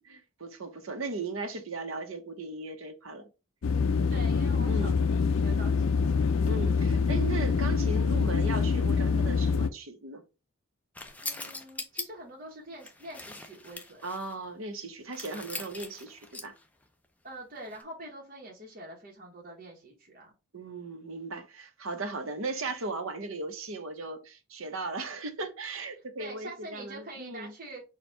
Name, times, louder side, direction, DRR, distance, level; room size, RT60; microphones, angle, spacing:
voice 1, 0.0-3.3 4.6-5.0 6.4-10.2 14.0-16.5 20.5-27.5, right 3 dB, 65° right, 0.8 m, -37 dB
sound 1, 3.6-9.7, left 5 dB, 70° left, 0.4 m, -25 dB
voice 2, 4.1-6.3 11.2-14.0 17.2-20.3 26.2-27.8, right 1 dB, 40° right, 1.0 m, -45 dB
sound 2, 10.9-12.0 12.7-14.3 15.1-16.6 17.6-17.8, left 2 dB, 5° left, 0.4 m, -41 dB
4.3 x 2.3 x 4.5 m
head